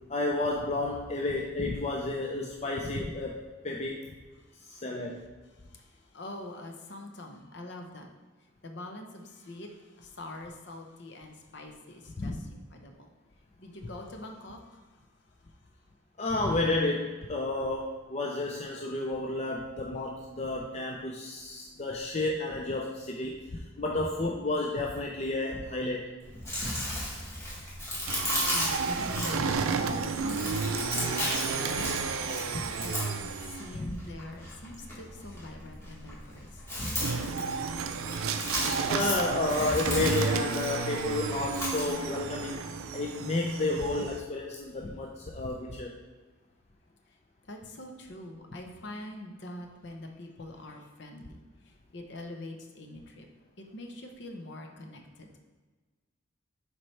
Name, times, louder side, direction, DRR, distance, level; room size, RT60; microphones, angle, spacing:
voice 1, 0.1-4.1 4.6-5.2 12.2-12.4 16.2-26.2 33.7-33.9 36.8-36.9 38.6-42.6 42.9-45.9, left 2 dB, 30° left, 0 dB, 0.4 m, -31 dB
voice 2, 4.5-4.8 5.5-8.1 8.6-13.1 13.6-15.0 28.0-28.2 28.8-37.0 37.4-37.5 47.1-47.2 47.4-53.3 53.6-55.4, left 1 dB, 55° left, 3 dB, 0.8 m, -44 dB
Chewing mastication, 26.2-41.9, left 1 dB, 15° left, 1.6 m, -36 dB
sound 1, 28.1-33.9 37.0-44.2, right 5 dB, 90° right, 0.4 m, -32 dB
7.1 x 4.5 x 3.3 m, 1.3 s
head